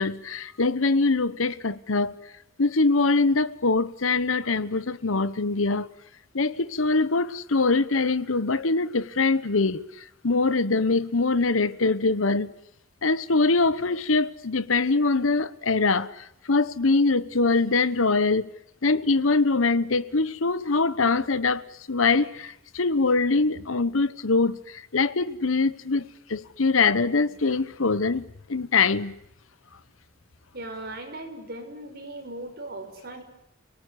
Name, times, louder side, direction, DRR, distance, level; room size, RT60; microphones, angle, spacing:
voice 1, 0.0-2.2 2.6-5.9 6.3-9.9 10.2-12.5 13.0-18.5 18.8-28.2 28.5-29.1, left 3 dB, 85° left, 1.1 m, -23 dB
voice 2, 30.5-33.2, right 2 dB, 55° right, 5.7 m, -38 dB
30.0 x 18.5 x 9.8 m
head